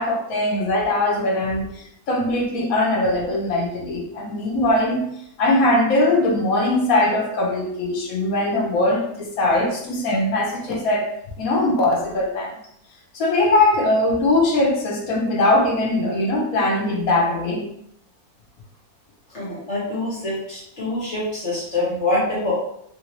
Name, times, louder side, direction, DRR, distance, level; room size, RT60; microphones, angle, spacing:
voice 1, 0.0-1.7 2.1-5.0 5.4-11.1 11.4-12.5 13.1-17.6, left 2 dB, 65° left, -1 dB, 0.9 m, -20 dB
voice 2, 19.3-22.5, left 2 dB, 45° left, -7 dB, 1.4 m, -25 dB
3.4 x 2.6 x 2.9 m, 0.73 s
omnidirectional pair, 1.9 m